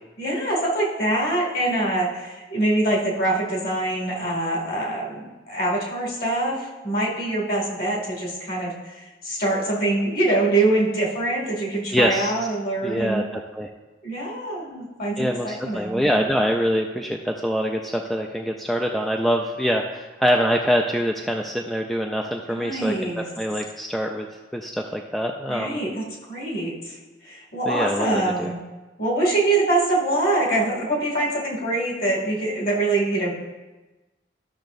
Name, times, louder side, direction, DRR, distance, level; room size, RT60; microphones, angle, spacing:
voice 1, 0.2-13.3 14.0-16.0 22.5-23.2 25.5-27.0 27.2-28.6 29.0-33.3, right 2 dB, 50° left, -2 dB, 2.3 m, -24 dB
voice 2, 11.9-12.3 12.8-13.7 15.2-24.3 24.5-25.8 27.7-28.5, equal, ahead, 2 dB, 0.3 m, -24 dB
13.5 x 6.3 x 2.6 m, 1.2 s
head